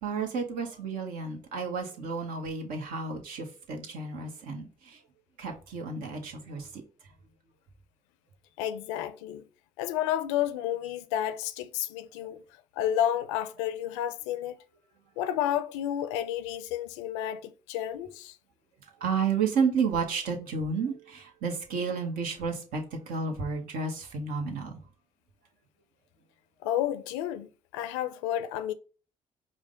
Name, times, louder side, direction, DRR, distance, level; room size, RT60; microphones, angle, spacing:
voice 1, 0.0-5.0 5.4-6.8 19.0-24.8, right 5 dB, 70° right, 1.0 m, -31 dB
voice 2, 8.6-9.4 9.8-12.4 12.8-14.6 15.2-18.4 26.6-28.7, left 11 dB, 90° left, 0.4 m, -31 dB
5.0 x 2.2 x 3.7 m
hypercardioid pair, 55°, 15 cm